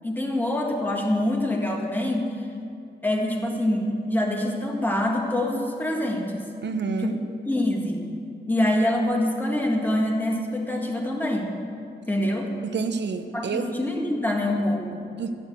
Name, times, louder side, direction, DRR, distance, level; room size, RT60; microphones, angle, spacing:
voice 1, 0.0-2.4 3.0-6.4 7.0-7.1 7.5-8.0 8.5-11.5 12.1-12.5 13.3-15.1, left 1 dB, 10° left, 0 dB, 2.0 m, -25 dB
voice 2, 6.6-7.2 12.6-13.7 15.2-15.3, right 5 dB, 75° right, 7 dB, 0.9 m, -28 dB
13.5 x 11.5 x 8.0 m, 2.5 s
wide cardioid pair, 160°, 18 cm